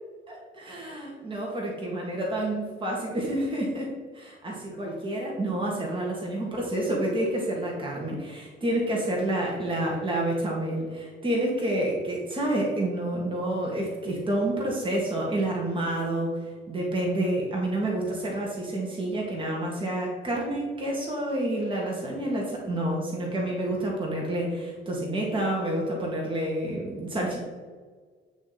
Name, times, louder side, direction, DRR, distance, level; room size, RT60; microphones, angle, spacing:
voice 1, 0.3-16.3 16.7-27.4, right 1 dB, 25° right, -3 dB, 1.6 m, -29 dB
8.8 x 3.0 x 4.0 m, 1.5 s
cardioid pair, 90°, 20 cm